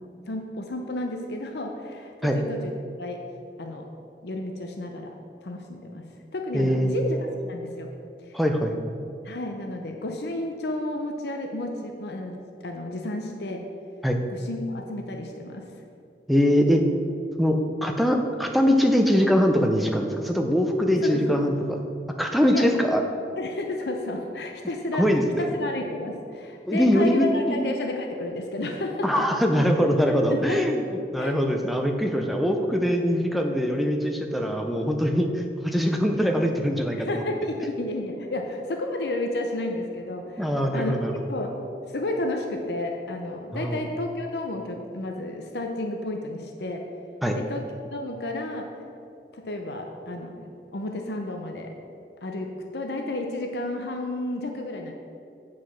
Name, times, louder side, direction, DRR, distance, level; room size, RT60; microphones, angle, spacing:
voice 1, 0.3-2.7 3.0-3.2 3.6-3.8 4.2-5.1 5.4-6.0 6.3-7.9 8.3-8.4 9.2-12.4 12.6-13.7 14.3-15.7 21.0-21.4 22.5-22.7 23.4-25.0 25.5-29.2 30.3-30.8 31.2-31.4 37.0-41.0 41.3-41.6 41.9-46.8 47.3-47.6 47.9-48.7 49.3-51.7 52.2-54.9, left 2 dB, 75° left, 3 dB, 0.7 m, -31 dB
voice 2, 6.5-7.0 8.3-8.8 14.0-14.2 16.3-16.8 17.4-21.5 22.2-23.0 25.0-25.5 26.7-27.7 29.0-37.2 40.4-41.2 43.5-43.8 47.2-47.4, equal, ahead, 3 dB, 0.5 m, -22 dB
8.0 x 5.0 x 5.8 m, 2.5 s
head